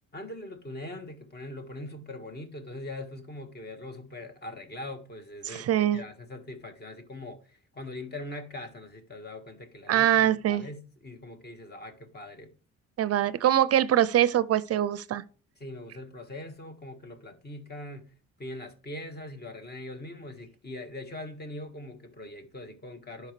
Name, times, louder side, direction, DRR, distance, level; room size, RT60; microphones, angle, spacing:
voice 1, 0.1-12.5 15.6-18.1 18.4-23.3, left 1 dB, 35° left, 1.6 m, -42 dB
voice 2, 5.4-6.0 9.9-10.6 13.0-15.2, right 11 dB, 55° right, 0.5 m, -23 dB
11.5 x 4.7 x 3.2 m
cardioid pair, 90°, 30 cm